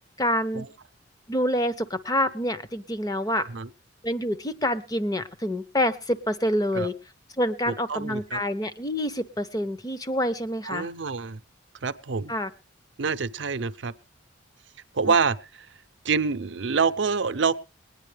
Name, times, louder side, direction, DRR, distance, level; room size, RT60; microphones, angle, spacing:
voice 1, 0.2-0.7 1.3-3.5 4.0-6.9 7.4-10.9 12.3-12.5 15.0-15.1, left 1 dB, 20° left, 12 dB, 0.7 m, -27 dB
voice 2, 3.3-3.7 6.7-6.9 7.7-8.4 10.6-11.4 11.8-12.3 13.0-13.9 14.9-15.7 16.0-17.5, right 5 dB, 65° right, 11 dB, 0.6 m, -26 dB
21.5 x 9.7 x 3.3 m, 0.31 s
head